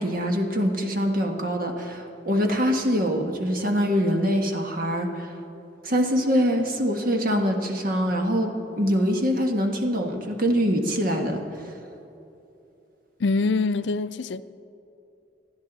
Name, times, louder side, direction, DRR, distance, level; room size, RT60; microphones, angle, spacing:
voice 1, 0.0-5.3 5.8-11.8, equal, 55° right, 3 dB, 1.4 m, -24 dB
voice 2, 13.2-14.4, left 3 dB, 75° left, 14 dB, 0.5 m, -24 dB
27.5 x 10.5 x 4.0 m, 2.8 s
head